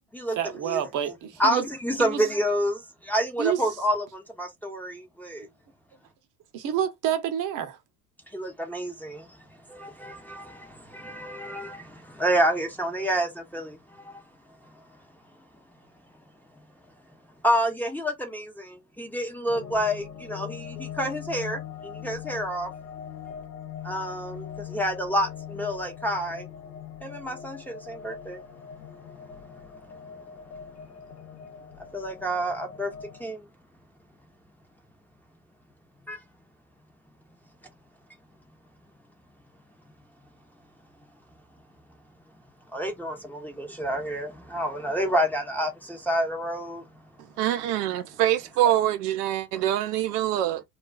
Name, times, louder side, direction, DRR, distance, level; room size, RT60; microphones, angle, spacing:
voice 1, 0.3-1.6 2.0-2.2 3.4-3.6 6.5-7.8, right 10 dB, 40° right, 0.7 m, -28 dB
voice 2, 1.4-5.5 8.3-9.3 9.7-13.8 17.4-22.7 23.8-26.4 27.0-28.4 31.9-32.9 33.2-33.4 36.1-36.2 42.7-46.8, equal, 5° left, 0.7 m, -28 dB
sound 1, 19.5-33.2, left 8 dB, 80° left, 0.9 m, -41 dB
voice 3, 47.4-50.6, right 12 dB, 75° right, 0.6 m, -24 dB
2.4 x 2.3 x 2.3 m
hypercardioid pair, 80°, 47 cm